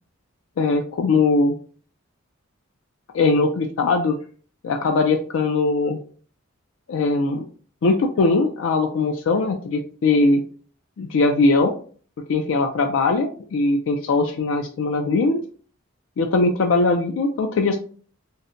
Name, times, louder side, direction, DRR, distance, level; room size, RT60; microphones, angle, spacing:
voice 1, 0.6-1.5 3.1-4.2 4.6-6.0 6.9-7.5 7.8-10.4 11.0-11.8 12.3-15.4 16.2-17.8, left 3 dB, 65° left, 5 dB, 0.4 m, -20 dB
3.9 x 2.1 x 2.5 m, 0.42 s
head